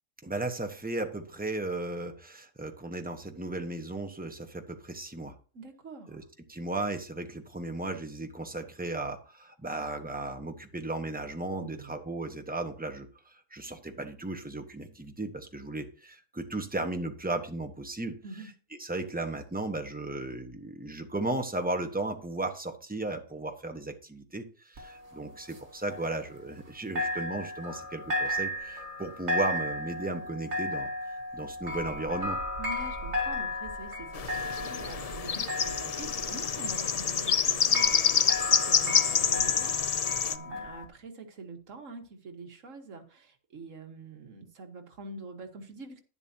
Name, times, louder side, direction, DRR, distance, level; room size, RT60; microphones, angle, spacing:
voice 1, 0.2-5.3 6.1-6.2 6.5-18.2 18.8-32.4, right 2 dB, 5° right, 5 dB, 1.2 m, -35 dB
voice 2, 5.5-6.3 11.6-12.0 18.2-18.5 32.6-46.0, right 3 dB, 75° right, 5 dB, 1.9 m, -45 dB
sound 1, 24.8-26.7 27.0-40.9, left 1 dB, 60° right, 2.1 m, -35 dB
sound 2, 34.1-40.4, left 7 dB, 55° left, 0.4 m, -27 dB
11.0 x 10.5 x 2.8 m, 0.37 s
omnidirectional pair, 1.3 m